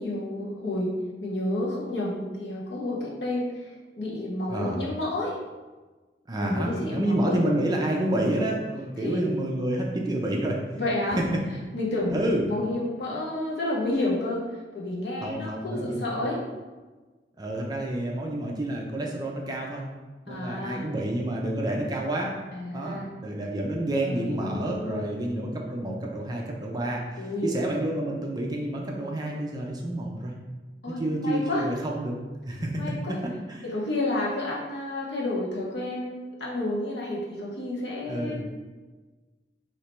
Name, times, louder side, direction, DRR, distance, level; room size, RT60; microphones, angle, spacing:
voice 1, 0.0-5.4 6.4-7.4 9.0-9.2 10.7-11.2 11.7-14.5 14.7-16.4 20.3-20.8 22.5-23.1 24.0-25.1 27.2-27.5 30.8-31.7 32.7-33.1 33.6-38.4, left 1 dB, 65° left, -5 dB, 1.1 m, -30 dB
voice 2, 4.5-4.8 6.3-10.6 11.2-11.4 12.1-12.4 15.2-16.1 17.4-19.8 20.3-22.4 22.7-30.3 31.0-32.2 32.5-32.8 33.1-33.6 38.1-38.4, right 1 dB, 20° right, -1 dB, 0.5 m, -29 dB
3.2 x 2.8 x 4.3 m, 1.3 s
head